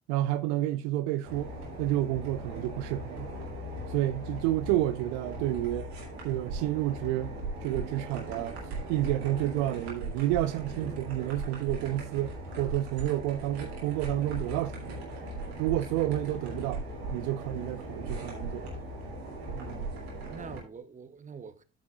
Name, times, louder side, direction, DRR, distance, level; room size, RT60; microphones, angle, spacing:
voice 1, 0.0-1.5 1.8-3.3 3.9-5.9 6.2-7.4 7.6-8.6 8.9-15.2 15.6-16.8 17.1-18.6, right 14 dB, 60° right, 0.5 m, -30 dB
sound 1, 1.2-20.6, right 1 dB, 80° right, 2.1 m, -39 dB
voice 2, 19.5-21.6, right 6 dB, 25° right, 1.0 m, -46 dB
12.5 x 5.8 x 2.4 m
figure-of-eight pair, 50°, 31 cm